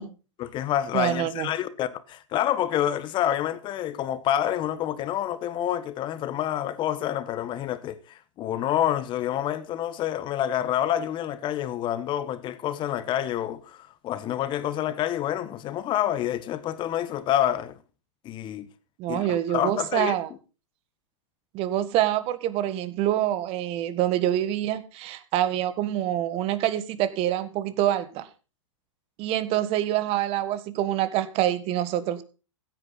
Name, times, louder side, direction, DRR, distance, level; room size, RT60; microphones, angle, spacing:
voice 1, 0.4-17.8 18.2-18.7 19.1-20.2, left 11 dB, 30° left, 1.2 m, -28 dB
voice 2, 0.9-1.5 19.0-20.3 21.5-28.3 29.2-32.2, right 12 dB, 35° right, 1.5 m, -26 dB
16.0 x 9.0 x 4.0 m
hypercardioid pair, 120°, 16 cm